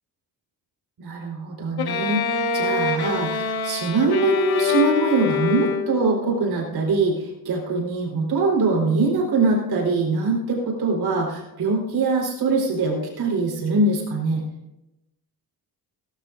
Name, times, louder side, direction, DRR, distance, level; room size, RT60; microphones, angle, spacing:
voice 1, 1.0-14.4, right 3 dB, 65° right, -1 dB, 4.3 m, -23 dB
Bowed string instrument, 1.8-6.2, left 5 dB, 70° left, 1.2 m, -24 dB
17.5 x 16.0 x 2.6 m, 0.93 s
wide cardioid pair, 175°, 39 cm